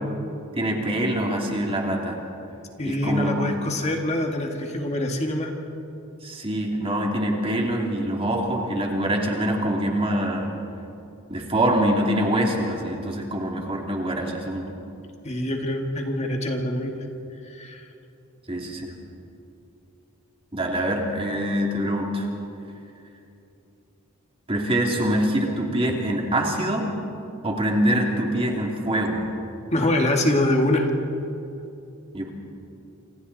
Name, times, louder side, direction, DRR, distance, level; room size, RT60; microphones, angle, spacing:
voice 1, 0.6-2.2 2.8-3.5 6.2-10.5 11.3-14.7 18.5-18.9 20.5-22.3 24.5-26.9 27.4-29.2 32.1-32.3, right 1 dB, 25° right, 0 dB, 2.8 m, -24 dB
voice 2, 2.8-5.5 15.2-16.9 17.5-17.9 29.7-30.9, left 1 dB, 30° left, 2 dB, 1.9 m, -24 dB
28.5 x 26.5 x 4.1 m, 2.8 s
head